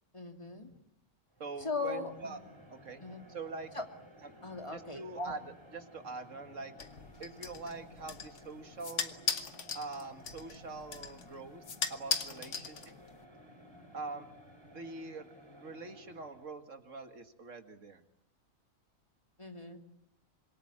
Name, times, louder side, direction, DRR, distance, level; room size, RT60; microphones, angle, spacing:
voice 1, 0.1-0.7 1.6-2.4 3.0-3.2 3.7-3.8 4.4-5.4 12.4-12.7 19.4-19.8, left 3 dB, 20° left, 4 dB, 2.7 m, -39 dB
sound 1, 1.3-16.6, equal, 20° right, 3.4 m, -56 dB
voice 2, 1.4-2.4 2.7-3.0 3.3-3.7 4.2-4.3 4.7-5.4 5.7-6.7 7.2-9.1 9.8-11.6 11.9-13.0 13.9-14.3 14.7-15.3 15.6-18.0, right 3 dB, 70° right, 7 dB, 2.2 m, -44 dB
sound 2, 6.8-13.2, left 5 dB, 65° left, 1.6 m, -39 dB
26.5 x 22.5 x 8.8 m, 0.77 s
omnidirectional pair, 1.4 m